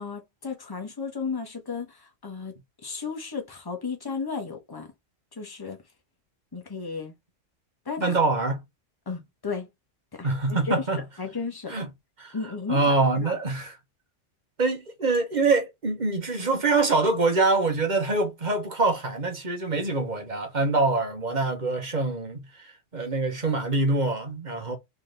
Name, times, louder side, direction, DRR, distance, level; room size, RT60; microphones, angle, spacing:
voice 1, 0.0-4.9 5.3-5.8 6.5-7.1 7.8-8.2 9.1-9.7 10.1-11.7 12.3-13.4, left 5 dB, 20° left, 1.1 m, -34 dB
voice 2, 8.0-8.6 10.2-11.0 11.7-11.9 12.2-12.3 12.7-13.7 14.6-24.8, right 3 dB, 35° right, 1.3 m, -25 dB
3.9 x 3.4 x 3.9 m
omnidirectional pair, 1.3 m